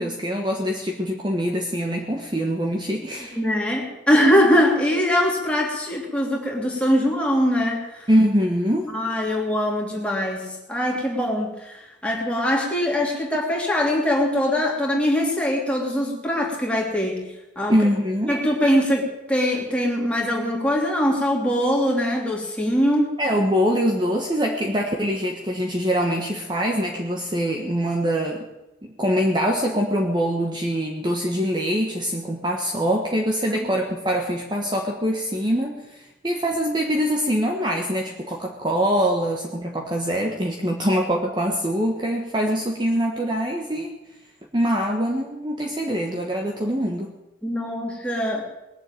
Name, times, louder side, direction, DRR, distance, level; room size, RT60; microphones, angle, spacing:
voice 1, 0.0-3.4 8.1-8.9 17.7-18.3 23.2-28.4 28.8-43.9 44.5-47.1, equal, 25° right, 1 dB, 1.4 m, -24 dB
voice 2, 3.4-8.1 8.9-17.8 18.3-23.1 33.5-33.6 47.4-48.5, equal, 5° left, -2 dB, 2.9 m, -22 dB
19.5 x 7.6 x 9.1 m, 0.98 s
head